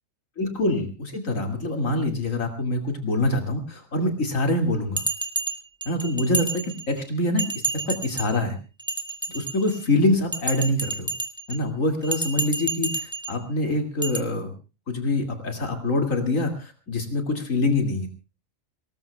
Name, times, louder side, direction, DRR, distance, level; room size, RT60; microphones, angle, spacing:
voice 1, 0.4-5.0 5.9-7.4 7.7-8.6 9.3-11.1 11.5-14.5 14.9-18.1, left 2 dB, 75° left, 5 dB, 2.9 m, -25 dB
Bell, 5.0-7.0 7.4-8.4 8.8-9.8 10.3-11.6 12.0-13.4 14.0-14.2, right 2 dB, 5° right, 1.8 m, -30 dB
25.0 x 19.5 x 2.3 m, 0.31 s
omnidirectional pair, 1.4 m